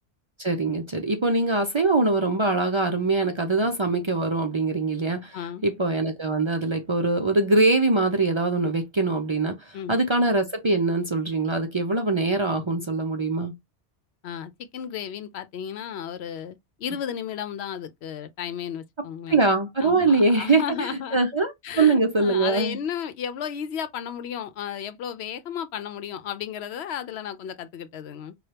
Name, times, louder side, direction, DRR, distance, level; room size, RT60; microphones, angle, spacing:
voice 1, 0.4-5.4 5.6-13.5 19.3-22.8, right 3 dB, 40° right, 0.4 m, -23 dB
voice 2, 5.3-5.7 9.7-10.0 14.2-19.4 19.8-21.2 21.6-28.3, left 8 dB, 85° left, 0.9 m, -33 dB
4.9 x 2.3 x 2.8 m
omnidirectional pair, 1.1 m